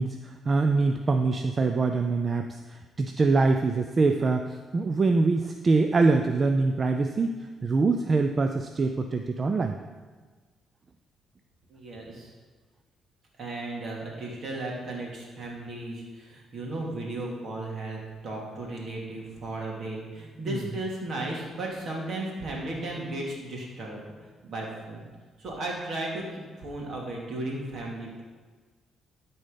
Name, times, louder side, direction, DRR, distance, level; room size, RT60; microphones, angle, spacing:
voice 1, 0.0-7.3 7.6-9.8 20.5-20.6, right 3 dB, 35° right, 6 dB, 0.5 m, -24 dB
voice 2, 11.7-12.3 13.4-18.0 18.2-24.0 24.4-25.1 25.4-28.2, right 2 dB, 60° right, -2 dB, 2.5 m, -35 dB
12.5 x 4.3 x 5.2 m, 1.4 s
cardioid pair, 90°, 0 cm